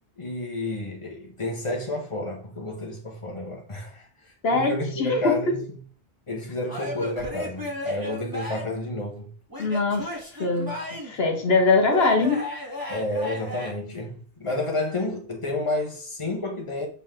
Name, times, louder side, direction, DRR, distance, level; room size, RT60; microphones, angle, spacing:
voice 1, 0.2-5.6 6.3-9.3 12.9-16.9, left 2 dB, 30° left, 1.6 m, -30 dB
voice 2, 4.4-5.3 9.6-10.1 10.4-10.7 11.0-12.4, left 3 dB, 75° left, 1.2 m, -22 dB
Male speech man speaking / Yell / Laughter, 6.7-8.8 9.5-11.2 11.9-13.7, left 1 dB, 20° right, 1.8 m, -34 dB
7.0 x 4.2 x 3.8 m
omnidirectional pair, 1.0 m